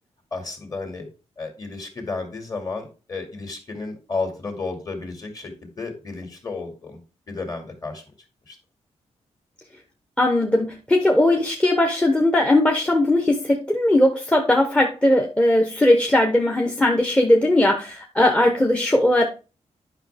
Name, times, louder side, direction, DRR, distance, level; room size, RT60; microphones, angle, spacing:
voice 1, 0.3-1.1 1.4-7.0 7.3-8.0 8.5-8.6, left 3 dB, 30° left, 3 dB, 2.3 m, -32 dB
voice 2, 10.2-19.2, left 1 dB, 10° left, 2 dB, 0.9 m, -19 dB
10.5 x 5.8 x 3.5 m, 0.32 s
wide cardioid pair, 165°, 12 cm